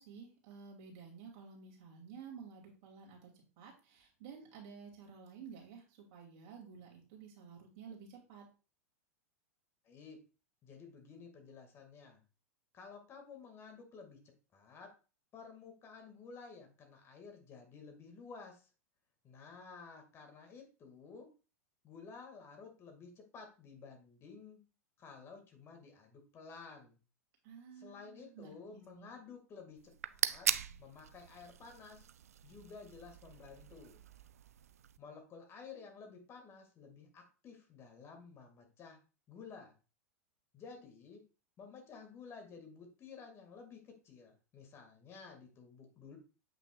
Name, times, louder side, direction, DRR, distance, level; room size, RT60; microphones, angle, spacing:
voice 1, 0.0-3.3 3.6-8.5 27.4-29.1, right 6 dB, 50° right, 0 dB, 2.5 m, -52 dB
voice 2, 9.8-10.2 10.6-12.2 12.7-14.2 14.5-14.9 15.3-18.7 19.2-21.3 21.8-24.6 25.0-27.0 27.8-30.5 30.8-32.1 32.4-34.0 35.0-39.0 39.3-39.7 40.5-41.2 41.6-46.2, left 5 dB, 30° left, 4 dB, 1.9 m, -53 dB
sound 1, 29.8-35.0, right 9 dB, 75° right, 0.4 m, -40 dB
7.6 x 5.8 x 2.3 m, 0.34 s
figure-of-eight pair, 95°, 8 cm